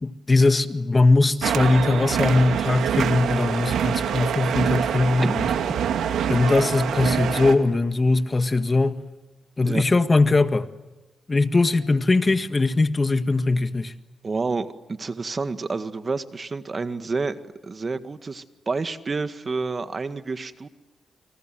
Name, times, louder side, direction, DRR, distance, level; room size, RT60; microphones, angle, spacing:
voice 1, 0.0-5.4 6.3-9.0 9.6-10.7 11.3-13.9, left 3 dB, 30° left, 1.7 m, -20 dB
sound 1, 1.4-7.6, right 8 dB, 85° right, 2.4 m, -25 dB
voice 2, 14.2-20.7, right 4 dB, 40° right, 1.8 m, -29 dB
29.0 x 27.0 x 7.7 m
cardioid pair, 65°, 0 cm